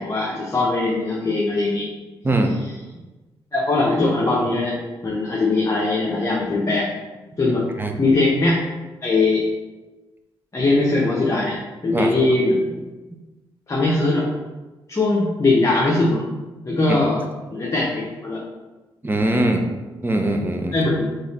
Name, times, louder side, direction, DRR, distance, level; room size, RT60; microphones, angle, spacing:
voice 1, 0.0-1.9 3.5-4.8 5.0-6.9 7.4-7.7 8.0-8.6 9.0-9.5 10.5-12.8 13.7-14.3 14.9-16.2 16.6-17.2 17.5-18.4 20.7-21.0, left 2 dB, 35° left, -4 dB, 0.9 m, -20 dB
voice 2, 2.2-2.6 7.8-7.9 11.9-12.1 19.0-19.7 20.0-20.7, right 1 dB, 20° right, 3 dB, 0.7 m, -21 dB
3.9 x 3.1 x 4.2 m, 1.2 s
supercardioid pair, 60°, 10 cm